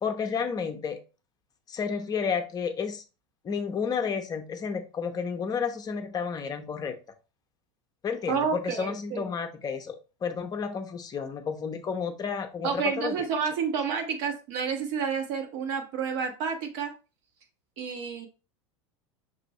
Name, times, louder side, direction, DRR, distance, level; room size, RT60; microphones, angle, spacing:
voice 1, 0.0-1.0 1.7-3.0 3.4-7.0 8.0-10.0 10.2-13.1, left 6 dB, 25° left, 7 dB, 0.7 m, -31 dB
voice 2, 8.3-9.2 12.6-16.9 17.8-18.3, right 6 dB, 50° right, 4 dB, 1.1 m, -30 dB
6.0 x 2.6 x 3.0 m, 0.31 s
figure-of-eight pair, 80°, 16 cm